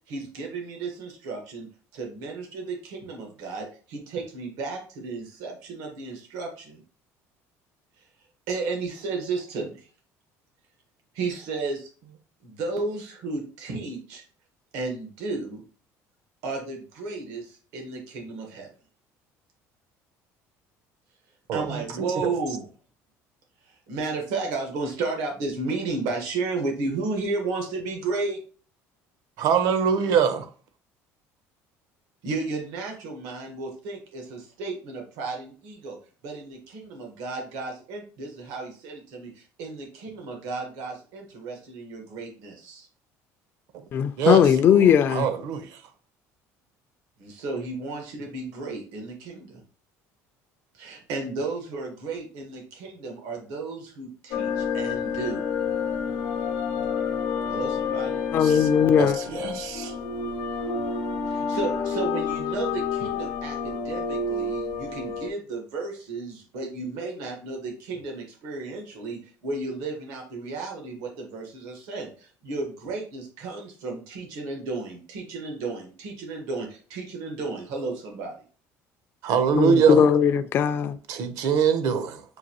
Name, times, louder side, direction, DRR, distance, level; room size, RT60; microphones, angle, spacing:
voice 1, 0.1-1.7 1.9-6.8 8.5-9.9 11.1-12.2 12.4-14.2 14.7-15.6 16.4-18.7 21.5-22.7 23.7-28.4 32.2-36.0 36.2-42.9 47.2-49.6 50.7-55.4 57.5-58.2 61.3-78.3, right 3 dB, 90° right, 1.2 m, -33 dB
voice 2, 21.5-22.3 29.4-30.5 44.2-44.4 45.1-45.8 58.4-58.7 59.0-59.9 79.2-80.1 81.1-82.2, right 7 dB, 65° right, 0.7 m, -23 dB
voice 3, 43.9-45.3 58.3-59.2 79.6-81.0, left 8 dB, 35° left, 0.3 m, -19 dB
sound 1, 54.3-65.3, left 5 dB, 85° left, 0.7 m, -29 dB
6.2 x 2.6 x 2.9 m
cardioid pair, 165°, 6 cm